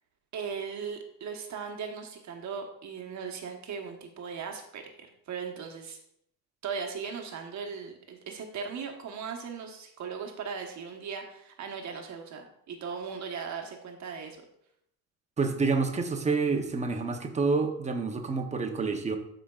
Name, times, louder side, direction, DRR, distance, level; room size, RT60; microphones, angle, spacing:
voice 1, 0.3-6.0 6.6-14.4, right 6 dB, 40° right, 2 dB, 1.1 m, -38 dB
voice 2, 15.4-19.2, right 4 dB, 15° right, 4 dB, 0.7 m, -28 dB
13.0 x 5.1 x 2.4 m, 0.73 s
cardioid pair, 150°, 43 cm